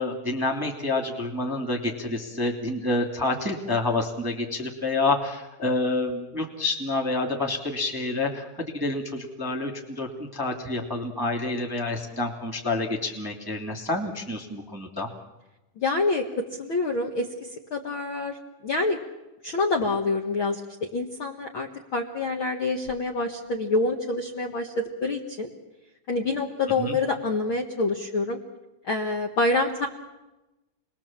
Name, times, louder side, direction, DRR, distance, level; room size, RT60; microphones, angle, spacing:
voice 1, 0.0-15.1 26.8-26.9, left 2 dB, 10° right, 1 dB, 1.7 m, -28 dB
voice 2, 15.8-18.4 18.6-19.0 19.4-20.6 20.9-25.5 26.1-28.4 28.8-29.9, left 3 dB, 50° left, 2 dB, 1.7 m, -27 dB
29.5 x 21.0 x 7.4 m, 1.0 s
omnidirectional pair, 4.3 m